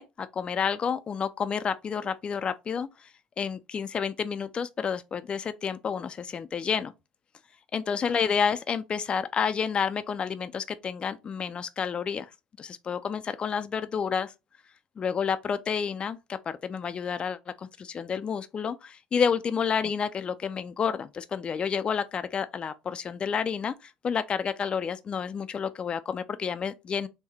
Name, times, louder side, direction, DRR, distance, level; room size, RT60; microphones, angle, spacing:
voice 1, 0.0-3.1 3.4-6.9 7.7-12.3 12.6-14.3 15.0-27.1, left 6 dB, 35° left, 0.3 m, -30 dB
3.6 x 2.1 x 3.4 m
supercardioid pair, 85°, 3 cm